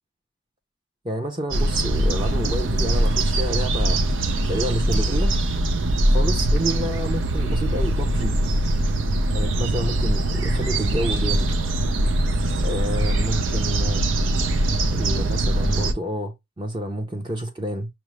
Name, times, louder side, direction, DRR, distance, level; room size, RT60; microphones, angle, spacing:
voice 1, 1.0-4.1 4.5-5.3 6.1-8.3 9.3-11.5 12.6-14.0 14.9-17.9, equal, 25° right, 0.6 m, -29 dB
sound 1, 1.5-15.9, right 1 dB, 85° right, 0.5 m, -22 dB
6.0 x 2.0 x 3.1 m
head